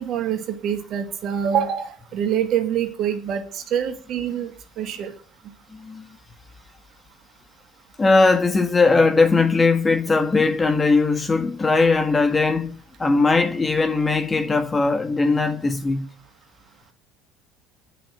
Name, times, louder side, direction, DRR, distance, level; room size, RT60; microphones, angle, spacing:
voice 1, 0.0-4.5 4.8-5.1, right 9 dB, 55° right, 2.5 m, -25 dB
voice 2, 5.7-6.1 8.0-16.1, left 3 dB, 25° left, 1.7 m, -19 dB
9.2 x 6.9 x 8.9 m
supercardioid pair, 80°, 0 cm